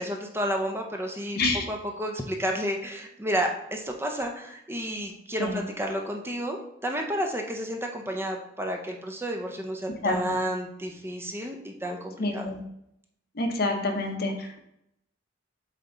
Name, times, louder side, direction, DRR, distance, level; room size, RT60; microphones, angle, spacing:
voice 1, 0.0-1.4 1.7-12.5, equal, 15° right, 2 dB, 0.6 m, -31 dB
voice 2, 1.3-1.7 5.4-5.6 10.0-10.4 12.2-12.6 13.4-14.6, left 2 dB, 55° left, 3 dB, 0.9 m, -28 dB
7.8 x 3.4 x 3.8 m, 0.79 s
head